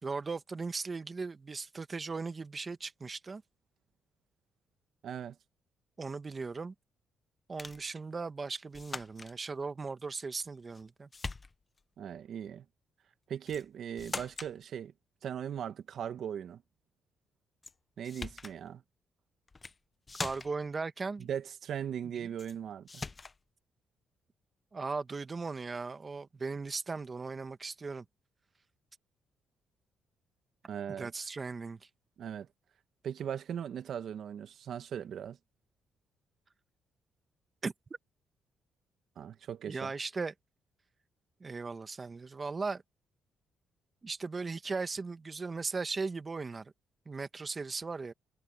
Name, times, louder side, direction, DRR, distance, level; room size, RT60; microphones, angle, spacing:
voice 1, 0.0-3.4 6.0-6.7 7.5-11.1 20.2-21.3 22.0-22.3 24.7-28.0 31.0-31.8 37.6-37.7 39.7-40.3 41.4-42.8 44.0-46.7 47.0-48.1, right 4 dB, 30° right, 1.4 m, -37 dB
voice 2, 5.0-5.4 12.0-12.6 13.3-14.9 15.2-16.6 18.0-18.8 21.2-23.0 30.7-31.1 32.2-32.5 33.0-35.4 39.2-39.9, right 9 dB, 65° right, 1.4 m, -39 dB
sound 1, 7.6-7.9 8.7-9.3 10.4-10.8 11.1-11.8 13.5-13.7 14.0-14.6 17.6-17.7 18.0-18.6 19.5-19.8 20.1-20.7 22.4-22.6 22.9-23.4, left 3 dB, 25° left, 1.1 m, -42 dB
cardioid pair, 90°, 0 cm